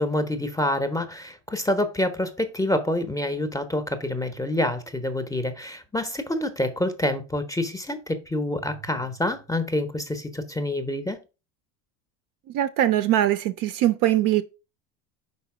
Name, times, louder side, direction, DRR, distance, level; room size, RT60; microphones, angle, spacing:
voice 1, 0.0-11.2, left 1 dB, 5° left, 0.7 m, -27 dB
voice 2, 12.5-14.4, right 13 dB, 45° right, 0.5 m, -22 dB
5.1 x 4.1 x 4.7 m
supercardioid pair, 100°, 48 cm